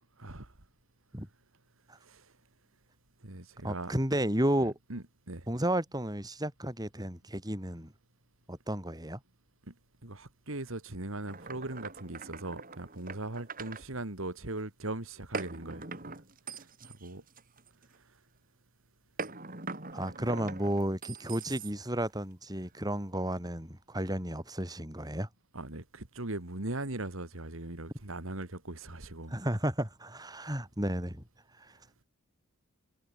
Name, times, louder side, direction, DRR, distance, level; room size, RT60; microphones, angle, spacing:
voice 1, 0.2-0.5 2.0-2.3 3.2-3.9 4.6-5.5 9.7-9.8 10.0-16.1 16.5-17.2 20.2-20.3 25.5-29.3, right 2 dB, 65° right, 2.4 m, -40 dB
voice 2, 3.6-4.7 5.5-7.9 8.5-9.2 19.9-25.3 29.3-31.2, right 1 dB, 15° right, 5.8 m, -32 dB
sound 1, 11.3-13.8 15.3-18.0 19.2-22.0, right 4 dB, 40° right, 4.2 m, -42 dB
head